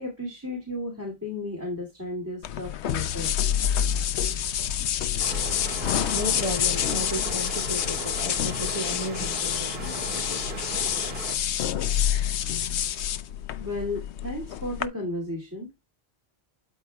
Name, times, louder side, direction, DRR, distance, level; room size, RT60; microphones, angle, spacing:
voice 1, 0.0-3.4 13.6-15.8, left 2 dB, 15° right, 2.3 m, -34 dB
sound 1, 2.4-14.9, left 10 dB, 90° left, 0.9 m, -27 dB
sound 2, 5.2-11.4, right 4 dB, 65° right, 2.1 m, -37 dB
voice 2, 6.1-10.4, left 1 dB, 30° left, 0.8 m, -34 dB
12.5 x 4.5 x 2.3 m
omnidirectional pair, 1.1 m